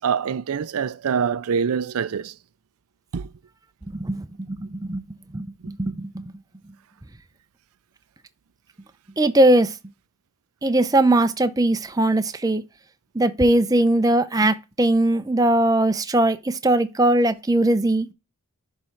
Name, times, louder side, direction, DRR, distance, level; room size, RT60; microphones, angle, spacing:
voice 1, 0.0-2.3 3.1-3.3, right 6 dB, 80° right, 0.4 m, -25 dB
voice 2, 3.9-5.0 5.3-6.2 9.2-9.7 10.6-12.6 13.1-18.1, right 1 dB, 15° right, 0.5 m, -20 dB
11.0 x 3.7 x 4.4 m
head